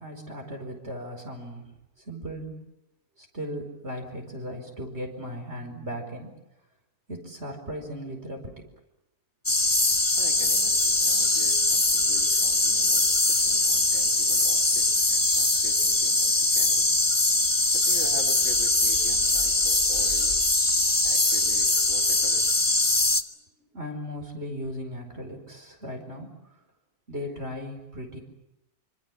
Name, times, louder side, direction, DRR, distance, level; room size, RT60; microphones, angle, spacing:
voice 1, 0.0-1.7 2.1-2.7 3.3-6.3 7.1-8.5 23.7-26.4 27.1-28.2, equal, 45° right, 4 dB, 5.3 m, -37 dB
sound 1, 9.5-23.2, left 2 dB, 15° left, 0.9 m, -22 dB
voice 2, 10.2-17.0 17.6-20.6 21.0-22.6, left 1 dB, 60° left, 2 dB, 4.0 m, -44 dB
27.0 x 25.5 x 7.4 m, 0.90 s
omnidirectional pair, 1.6 m